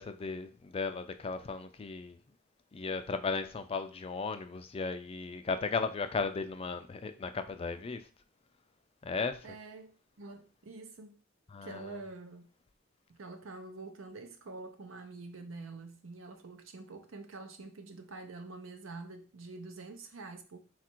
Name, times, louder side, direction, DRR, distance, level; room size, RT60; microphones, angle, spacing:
voice 1, 0.0-2.2 2.7-8.0 9.0-9.4 11.5-12.0, left 4 dB, 30° left, 0.3 m, -36 dB
voice 2, 9.4-11.2 11.6-12.5 13.2-20.6, right 3 dB, 75° right, 0.7 m, -46 dB
4.1 x 2.5 x 4.4 m
head